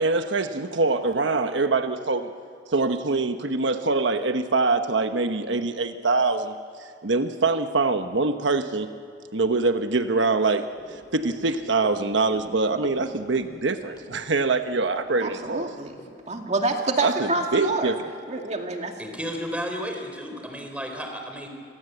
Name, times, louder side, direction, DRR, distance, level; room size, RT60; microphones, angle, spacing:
voice 1, 0.0-2.3 2.7-8.9 9.3-15.7 17.0-18.0, right 3 dB, 85° right, 8 dB, 1.1 m, -24 dB
sound 1, 10.7-17.2 17.6-17.7, left 1 dB, 25° left, 3.6 m, -46 dB
voice 2, 15.2-16.0 16.3-17.9 18.3-18.9, right 2 dB, 40° right, 3 dB, 2.3 m, -27 dB
voice 3, 19.0-21.5, equal, 5° right, 3 dB, 3.9 m, -33 dB
29.5 x 23.5 x 8.1 m, 2.5 s
head